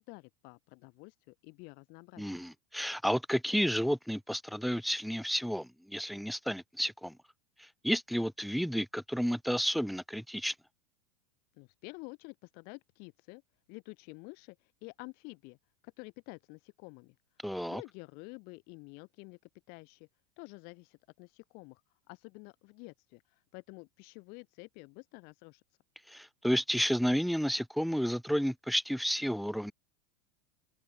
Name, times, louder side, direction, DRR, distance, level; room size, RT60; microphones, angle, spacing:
voice 1, 0.0-2.4 11.6-13.4 13.7-15.6 15.8-17.1 17.7-19.4 19.7-20.1 20.4-21.8 22.1-25.6, left 30 dB, 50° left, 2.5 m, -49 dB
voice 2, 2.2-7.1 7.6-10.5 17.4-17.8 26.1-29.7, equal, ahead, 0.5 m, -31 dB
open air
supercardioid pair, 140°, 20 cm